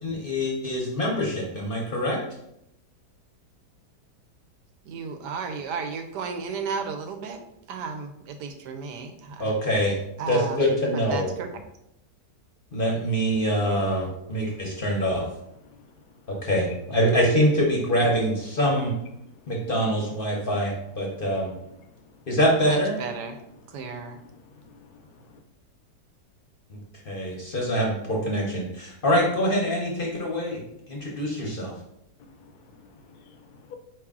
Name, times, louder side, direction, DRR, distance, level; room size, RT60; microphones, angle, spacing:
voice 1, 0.0-2.2 9.4-10.0 10.3-11.3 12.7-15.2 16.4-18.9 19.5-21.5 22.3-23.0 26.7-26.8 27.1-30.6 30.9-31.7, equal, 45° left, -2 dB, 0.7 m, -24 dB
voice 2, 4.9-7.4 7.7-9.5 10.2-10.6 10.9-11.5 22.6-23.4 23.7-24.2, right 5 dB, 80° right, 7 dB, 1.2 m, -33 dB
voice 3, 24.2-25.4 32.2-33.8, left 5 dB, 75° left, 5 dB, 1.0 m, -51 dB
4.7 x 3.0 x 3.6 m, 0.81 s
omnidirectional pair, 1.8 m